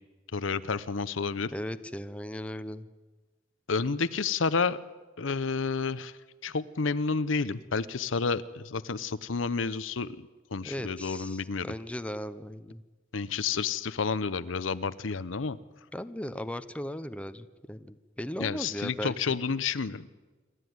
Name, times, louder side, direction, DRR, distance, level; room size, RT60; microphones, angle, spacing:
voice 1, 0.3-1.5 3.7-4.8 5.2-6.1 6.4-11.7 13.1-15.6 18.4-20.1, left 5 dB, 80° left, 15 dB, 0.8 m, -30 dB
voice 2, 1.5-2.9 10.7-12.8 15.9-19.4, equal, 5° left, 11 dB, 0.8 m, -37 dB
27.5 x 13.0 x 9.5 m, 1.3 s
head